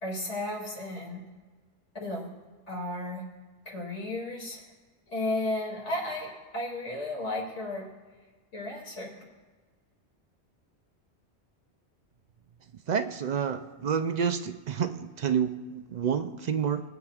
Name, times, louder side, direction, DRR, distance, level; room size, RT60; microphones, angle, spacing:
voice 1, 0.0-1.2 2.0-2.3 2.7-3.3 3.7-4.6 5.1-7.9 8.5-9.2, left 1 dB, 80° left, -4 dB, 2.9 m, -34 dB
voice 2, 12.9-16.8, right 7 dB, 60° right, 9 dB, 0.4 m, -29 dB
20.0 x 8.8 x 2.4 m, 1.3 s
omnidirectional pair, 1.2 m